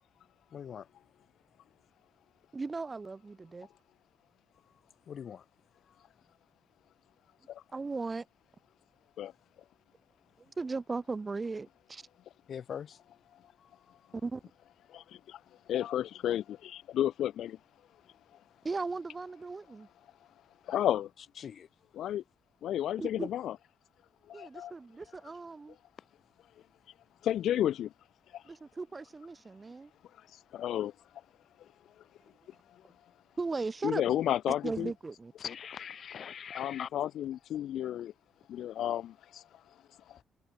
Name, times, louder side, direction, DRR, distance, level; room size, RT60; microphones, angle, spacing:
voice 1, 0.5-0.9 4.7-4.8 5.1-5.5 5.9-6.1 12.5-13.0 13.6-14.1 21.4-21.7 35.4-36.9, left 8 dB, 55° left, 7.3 m, -43 dB
voice 2, 2.5-3.7 7.7-8.3 10.4-12.0 14.1-14.4 18.6-19.9 23.0-23.3 24.3-25.8 28.4-29.9 33.4-34.2 34.5-35.3, right 3 dB, 25° right, 3.2 m, -37 dB
voice 3, 14.9-15.4 15.7-17.6 20.7-21.1 22.0-22.2 22.6-23.6 24.3-24.7 27.2-27.9 28.3-28.4 30.2-30.9 33.8-34.9 36.5-38.1 38.5-39.4 40.1-40.2, left 11 dB, 75° left, 0.3 m, -32 dB
cardioid pair, 90°, 0 cm